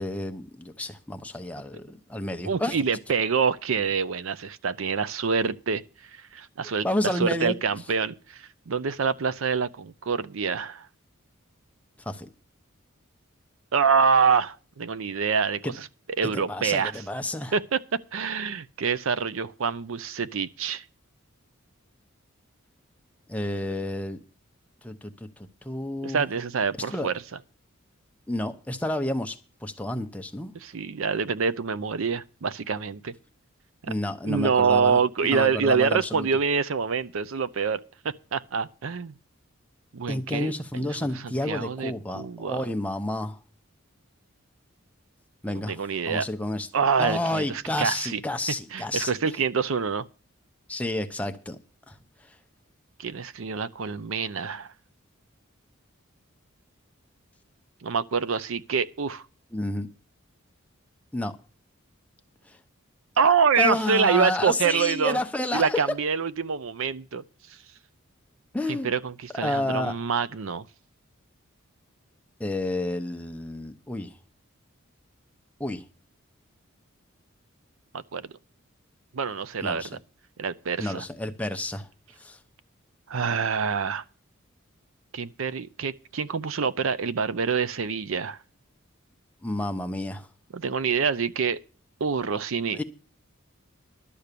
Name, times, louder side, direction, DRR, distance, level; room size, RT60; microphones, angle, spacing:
voice 1, 0.0-2.8 6.8-7.5 12.1-12.3 15.6-15.7 16.2-17.5 23.3-24.2 24.8-25.1 25.6-26.2 26.9-27.1 28.3-30.5 33.9-35.0 35.3-36.3 40.1-43.4 45.4-45.8 46.1-46.7 47.0-49.1 50.7-51.6 51.9-52.0 59.5-59.9 61.1-61.3 62.5-62.6 63.6-66.0 68.5-68.9 69.3-70.0 72.4-74.1 75.6-75.8 79.6-79.9 80.8-81.9 82.2-82.4 89.4-90.3 92.7-92.8, left 1 dB, 5° left, 0.7 m, -30 dB
voice 2, 2.4-5.8 6.3-10.9 13.7-15.9 16.2-17.0 17.5-17.8 18.1-20.8 26.0-27.1 30.5-33.1 33.8-33.9 34.2-39.1 39.9-40.9 41.2-42.6 45.7-46.3 46.7-48.2 48.7-50.0 53.0-54.7 57.8-59.2 63.2-65.2 65.5-67.2 68.7-70.6 77.9-78.2 79.1-80.0 80.4-81.0 83.1-84.0 85.1-88.4 90.5-91.6 92.0-92.8, right 5 dB, 70° right, 0.6 m, -26 dB
12.0 x 7.1 x 6.7 m
head